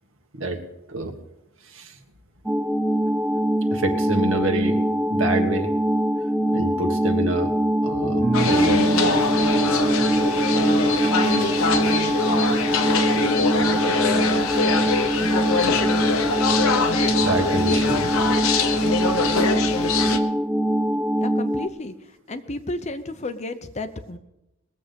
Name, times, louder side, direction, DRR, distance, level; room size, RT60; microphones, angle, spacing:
sound 1, 2.5-21.7, equal, 5° right, 0.4 m, -23 dB
voice 1, 3.7-5.7 6.5-7.5 7.8-8.8 14.4-15.7 17.2-18.3, right 2 dB, 65° right, 5 dB, 1.6 m, -28 dB
sound 2, 8.2-13.7 14.0-14.1, right 1 dB, 45° right, 2.1 m, -26 dB
sound 3, 8.3-20.2, left 4 dB, 75° left, 1.0 m, -23 dB
voice 2, 21.2-24.2, left 2 dB, 30° left, 10 dB, 0.7 m, -32 dB
21.0 x 7.7 x 5.2 m, 0.90 s
head